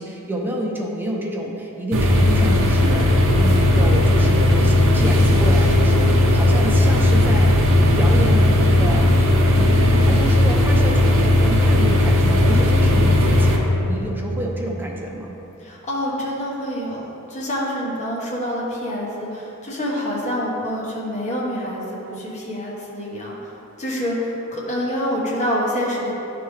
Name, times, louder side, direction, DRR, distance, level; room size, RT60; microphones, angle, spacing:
voice 1, 0.0-3.1 3.4-7.5 8.0-9.1 9.5-15.3, right 1 dB, 10° right, -2 dB, 0.6 m, -28 dB
sound 1, 1.9-13.6, left 1 dB, 60° right, 0.8 m, -16 dB
voice 2, 15.6-23.5 23.8-26.1, equal, 35° left, -5 dB, 1.2 m, -26 dB
10.5 x 3.5 x 3.2 m, 3.0 s
head